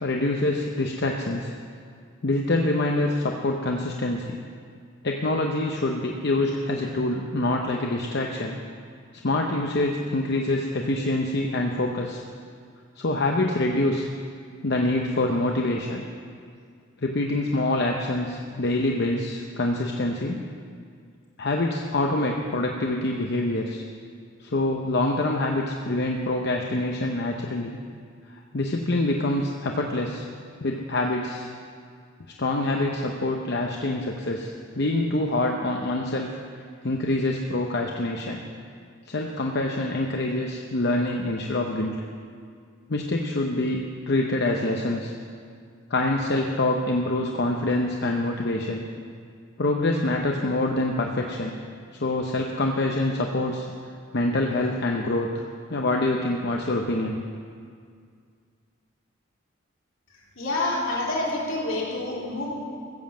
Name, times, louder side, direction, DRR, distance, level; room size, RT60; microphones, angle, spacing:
voice 1, 0.0-1.5 2.2-4.4 5.0-8.6 9.2-12.2 13.0-14.1 14.6-16.0 17.0-20.4 21.4-23.8 24.4-27.8 28.5-30.3 30.6-31.5 32.4-36.3 36.8-38.4 39.1-42.0 42.9-45.1 45.9-48.8 49.6-51.5 52.0-53.7 54.1-55.4 55.7-57.2, left 2 dB, 55° left, 1 dB, 0.8 m, -25 dB
voice 2, 60.3-62.5, left 2 dB, 75° left, -5 dB, 3.4 m, -27 dB
16.0 x 7.5 x 7.4 m, 2.2 s
head